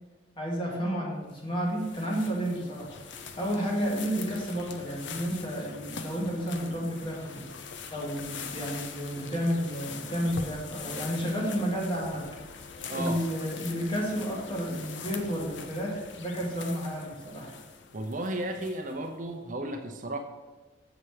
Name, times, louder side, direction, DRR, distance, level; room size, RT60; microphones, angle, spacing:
voice 1, 0.4-2.9 3.4-7.5 7.9-12.3 12.9-17.5, equal, 25° left, -2 dB, 1.8 m, -31 dB
sound 1, 1.3-19.1, left 5 dB, 65° left, 0.6 m, -43 dB
voice 2, 17.9-20.2, right 1 dB, 40° right, 4 dB, 0.6 m, -33 dB
7.2 x 5.7 x 4.8 m, 1.2 s
head